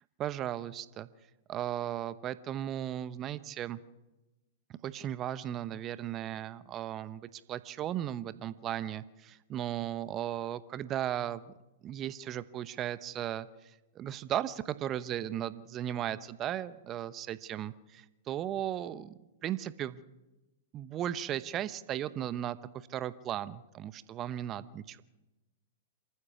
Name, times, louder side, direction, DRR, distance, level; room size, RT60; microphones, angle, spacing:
voice 1, 0.2-1.1 1.5-3.8 4.8-11.5 11.8-20.0 20.7-25.0, right 11 dB, 30° right, 16 dB, 0.9 m, -36 dB
27.0 x 14.5 x 7.0 m, 1.0 s
figure-of-eight pair, 105°, 0 cm